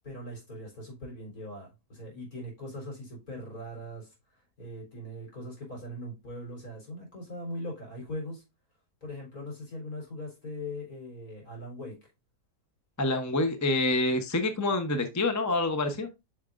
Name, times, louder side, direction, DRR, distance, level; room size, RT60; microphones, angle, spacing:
voice 1, 0.0-4.1 4.6-8.4 9.0-12.0, left 1 dB, 65° left, 4.2 m, -40 dB
voice 2, 13.0-16.1, left 2 dB, 15° left, 0.6 m, -27 dB
8.5 x 5.8 x 2.5 m
omnidirectional pair, 1.7 m